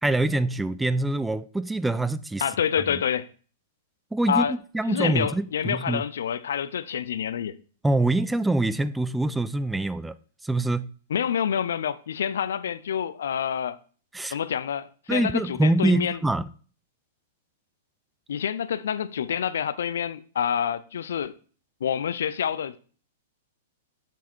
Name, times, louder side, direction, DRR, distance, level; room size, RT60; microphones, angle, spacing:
voice 1, 0.0-2.4 2.9-3.0 4.1-6.0 7.8-10.2 10.4-10.9 14.1-14.4 15.1-16.5, right 2 dB, 5° right, 0.4 m, -25 dB
voice 2, 2.4-3.3 4.3-4.5 4.9-7.6 11.1-13.8 14.3-16.2 18.3-21.3 21.8-22.8, left 8 dB, 70° left, 0.5 m, -27 dB
7.2 x 5.7 x 4.4 m
hypercardioid pair, 110°, 0 cm